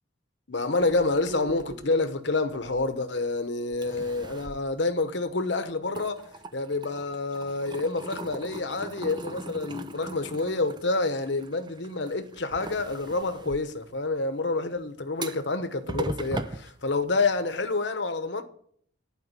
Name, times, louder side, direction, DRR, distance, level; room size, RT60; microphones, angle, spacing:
voice 1, 0.5-18.4, left 3 dB, 60° left, 1.0 m, -28 dB
sound 1, 0.8-3.3 3.7-5.5 5.8-17.5, right 2 dB, 20° right, 0.4 m, -40 dB
11.0 x 5.0 x 8.3 m
head